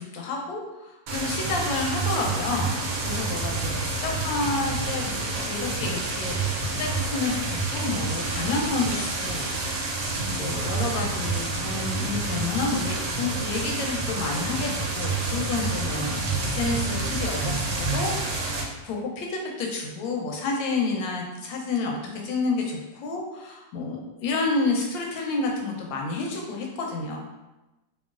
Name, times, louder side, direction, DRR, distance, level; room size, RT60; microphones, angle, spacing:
voice 1, 0.0-18.6 18.8-27.2, left 3 dB, 90° left, 0 dB, 1.3 m, -30 dB
sound 1, 1.1-18.6, right 3 dB, 70° right, 1.1 m, -28 dB
3.0 x 2.6 x 2.3 m, 1.0 s
omnidirectional pair, 2.0 m